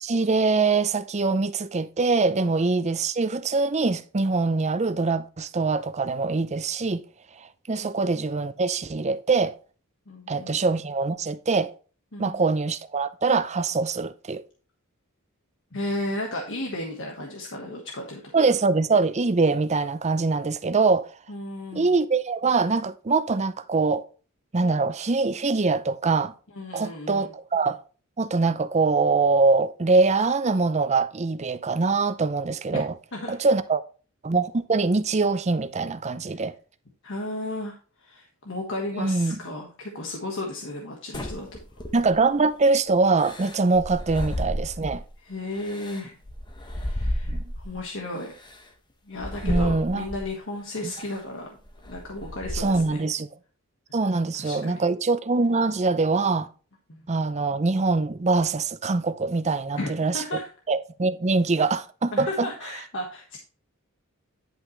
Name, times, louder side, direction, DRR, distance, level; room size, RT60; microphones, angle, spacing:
voice 1, 0.0-7.0 7.4-9.6 10.3-11.7 12.2-14.4 18.3-21.1 21.7-24.0 24.5-26.3 26.7-27.8 28.2-32.9 33.3-33.8 34.2-36.5 39.0-39.4 41.9-45.0 47.3-47.4 49.4-50.0 52.5-53.3 53.9-56.5 57.1-60.2 60.7-62.5, right 3 dB, 30° right, 0.6 m, -23 dB
voice 2, 10.1-10.6 12.1-12.4 15.7-18.2 21.3-21.9 26.5-27.3 32.7-32.8 33.1-33.4 36.3-36.4 37.0-41.5 41.8-41.9 45.2-46.2 46.6-48.3 49.1-51.5 51.8-53.1 54.4-54.7 56.9-57.1 59.8-59.9 60.1-60.5 62.1-63.4, left 1 dB, 60° left, 1.4 m, -34 dB
sound 1, 41.1-42.3 43.2-45.1 45.5-47.8 48.4-48.6 49.2-50.3 50.9-51.2 51.6-52.9, equal, 20° left, 1.0 m, -32 dB
10.5 x 5.7 x 3.1 m
head